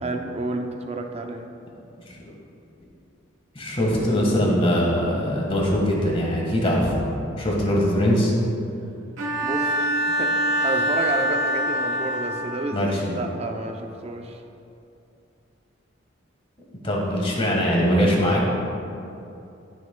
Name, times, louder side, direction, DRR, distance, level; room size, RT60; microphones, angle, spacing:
voice 1, 0.0-1.5 9.4-14.4, right 2 dB, 30° right, 4 dB, 0.5 m, -30 dB
voice 2, 3.5-7.0 7.4-8.3 12.7-13.2 16.8-18.6, equal, 30° left, -2 dB, 1.4 m, -22 dB
Bowed string instrument, 9.2-12.9, right 1 dB, 90° right, 1.2 m, -24 dB
12.5 x 6.3 x 2.2 m, 2.7 s
head